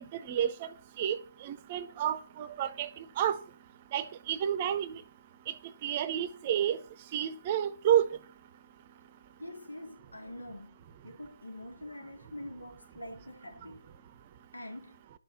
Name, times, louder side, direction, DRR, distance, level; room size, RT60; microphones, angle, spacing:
voice 1, 0.1-0.7 1.0-1.2 1.4-3.4 3.9-5.0 5.5-5.6 5.8-6.8 7.1-8.1, right 10 dB, 25° right, 0.8 m, -30 dB
voice 2, 9.4-13.8 14.5-15.0, left 1 dB, 85° left, 3.2 m, -45 dB
11.5 x 6.6 x 7.1 m
figure-of-eight pair, 150°, 0 cm